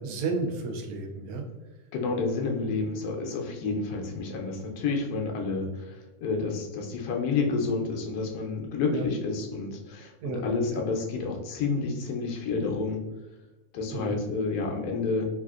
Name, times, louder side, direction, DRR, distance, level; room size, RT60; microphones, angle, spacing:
voice 1, 0.0-1.4 8.9-9.1 10.2-10.4 10.7-10.8 13.9-14.1, right 3 dB, 75° right, 3 dB, 1.0 m, -32 dB
voice 2, 1.9-13.0 13.7-15.3, left 4 dB, 75° left, 1 dB, 1.1 m, -29 dB
3.4 x 2.5 x 2.4 m, 1.1 s
omnidirectional pair, 1.6 m